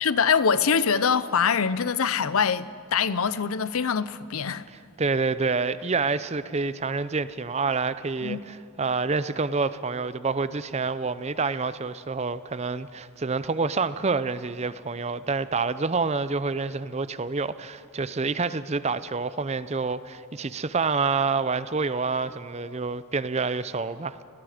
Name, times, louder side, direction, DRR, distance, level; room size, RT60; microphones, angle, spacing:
voice 1, 0.0-4.6 8.2-8.4, left 6 dB, 75° left, 0.6 m, -24 dB
voice 2, 5.0-24.2, right 4 dB, 30° right, 0.5 m, -27 dB
29.5 x 18.0 x 5.0 m
head